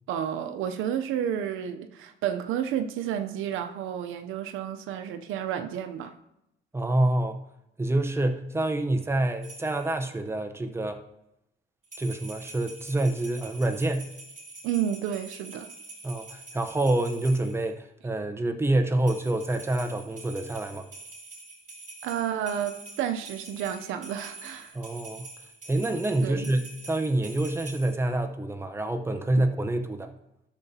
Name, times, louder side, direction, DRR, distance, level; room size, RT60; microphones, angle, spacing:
voice 1, 0.1-6.1 14.6-15.7 22.0-24.7 26.2-26.5, right 9 dB, 90° right, 7 dB, 0.6 m, -31 dB
voice 2, 6.7-7.4 7.8-11.0 12.0-14.1 16.0-20.9 24.7-25.3 25.7-30.1, right 1 dB, 10° right, 6 dB, 0.8 m, -27 dB
sound 1, 9.4-10.0 11.8-17.7 19.0-28.0, right 3 dB, 40° right, 3.3 m, -46 dB
11.5 x 6.9 x 2.8 m, 0.84 s
cardioid pair, 90°, 20 cm